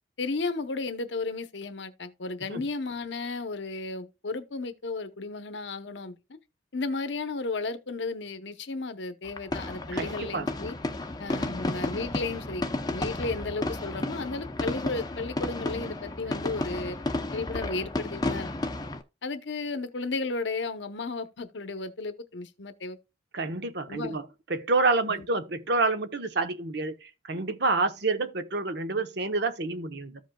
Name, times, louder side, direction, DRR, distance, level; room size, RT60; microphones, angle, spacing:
voice 1, 0.2-6.4 6.7-10.8 11.2-12.6 12.9-17.0 17.3-18.5 19.2-23.0 23.9-24.2 25.1-25.2, left 3 dB, 65° left, 0.8 m, -34 dB
sound 1, 9.3-19.0, left 2 dB, 20° left, 0.6 m, -32 dB
voice 2, 9.9-10.5 23.3-30.2, right 3 dB, 60° right, 0.9 m, -28 dB
14.0 x 5.2 x 2.2 m
head